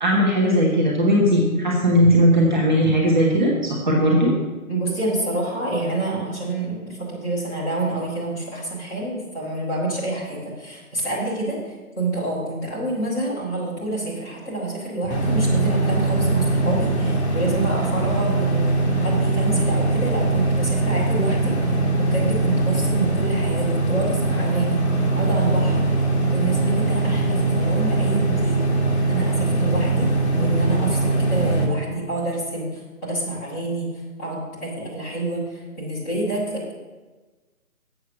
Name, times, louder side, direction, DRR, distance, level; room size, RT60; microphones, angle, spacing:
voice 1, 0.0-4.3, equal, 30° right, -4 dB, 1.3 m, -18 dB
voice 2, 4.7-21.7 22.0-24.8 25.1-25.8 26.3-30.1 30.4-33.9 34.2-36.8, right 2 dB, 10° left, -11 dB, 2.1 m, -28 dB
sound 1, 15.1-31.7, right 2 dB, 45° left, 1.8 m, -21 dB
7.9 x 7.1 x 5.9 m, 1.3 s
hypercardioid pair, 175°, 44 cm